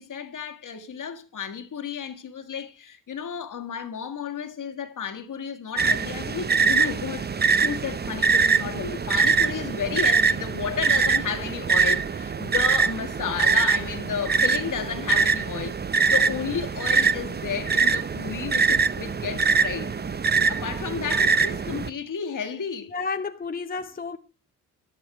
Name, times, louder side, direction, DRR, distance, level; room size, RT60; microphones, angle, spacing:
voice 1, 0.0-15.8 16.1-19.9 20.5-22.9, left 7 dB, 50° left, 1.6 m, -32 dB
sound 1, 5.8-21.9, right 5 dB, 25° right, 0.7 m, -23 dB
voice 2, 22.9-24.2, left 4 dB, 20° left, 0.8 m, -31 dB
12.5 x 11.0 x 4.7 m
hypercardioid pair, 45°, 40 cm